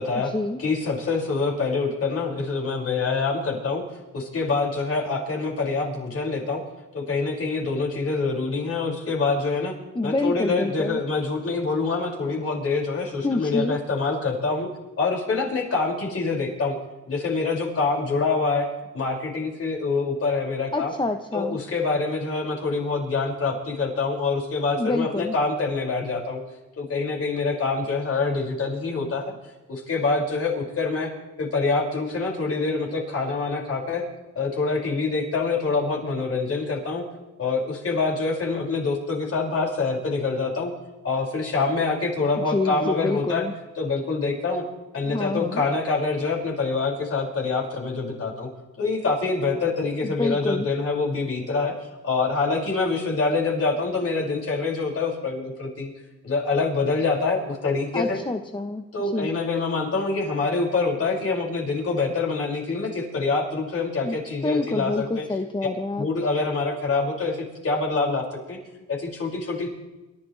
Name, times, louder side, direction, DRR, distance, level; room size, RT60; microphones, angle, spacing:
voice 1, 0.0-0.3 0.6-3.8 4.1-6.6 6.9-9.8 10.0-14.7 15.0-16.8 17.1-18.7 18.9-20.9 21.3-26.4 26.8-29.3 29.7-31.1 31.4-34.0 34.4-37.0 37.4-40.7 41.0-43.5 43.8-44.6 44.9-48.5 48.8-51.7 52.0-55.9 56.2-58.2 58.9-65.2 66.0-68.6 68.9-69.7, left 3 dB, 50° left, -2 dB, 6.0 m, -25 dB
voice 2, 9.9-11.0 13.2-13.8 20.7-21.6 24.8-25.3 42.4-43.5 45.1-45.6 50.0-50.7 57.9-58.8 59.1-59.3 64.0-64.2 64.4-66.1, left 2 dB, 15° left, 6 dB, 1.0 m, -27 dB
29.0 x 12.5 x 3.4 m, 1.1 s
cardioid pair, 90°, 30 cm